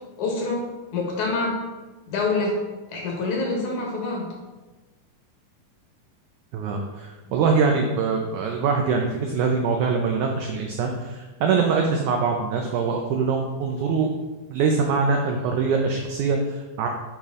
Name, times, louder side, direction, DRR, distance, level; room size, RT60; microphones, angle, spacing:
voice 1, 0.2-0.6 0.9-1.6 2.1-2.6 2.9-4.3, left 3 dB, 65° left, -1 dB, 2.4 m, -26 dB
voice 2, 6.5-14.1 14.5-16.9, right 5 dB, 85° right, 2 dB, 1.7 m, -23 dB
9.0 x 5.1 x 3.6 m, 1.2 s
omnidirectional pair, 4.3 m